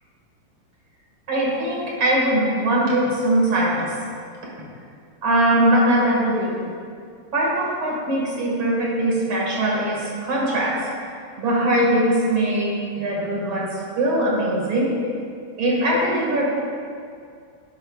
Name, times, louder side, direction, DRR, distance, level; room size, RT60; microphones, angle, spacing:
voice 1, 1.3-3.9 5.2-6.6 7.3-10.8 11.4-14.9 15.6-16.5, right 1 dB, 40° right, -4 dB, 2.0 m, -21 dB
11.5 x 10.5 x 2.4 m, 2.3 s
omnidirectional pair, 4.5 m